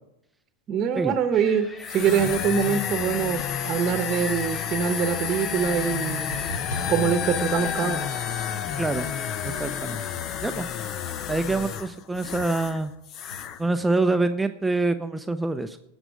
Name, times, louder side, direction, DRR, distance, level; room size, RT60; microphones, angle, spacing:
voice 1, 0.7-6.3 6.9-8.1, right 7 dB, 35° right, 8 dB, 1.1 m, -24 dB
sound 1, 1.3-8.1, left 2 dB, 20° left, 4.0 m, -44 dB
sound 2, 1.8-12.8 13.1-13.6, left 8 dB, 40° left, 0.8 m, -30 dB
sound 3, 6.3-10.6 10.9-13.8, left 1 dB, 75° left, 2.3 m, -42 dB
voice 2, 8.8-9.1 9.4-10.0 10.4-10.7 11.3-12.9 13.6-15.8, right 2 dB, 10° right, 8 dB, 0.7 m, -26 dB
18.0 x 8.1 x 5.2 m, 0.83 s
figure-of-eight pair, 90°, 0 cm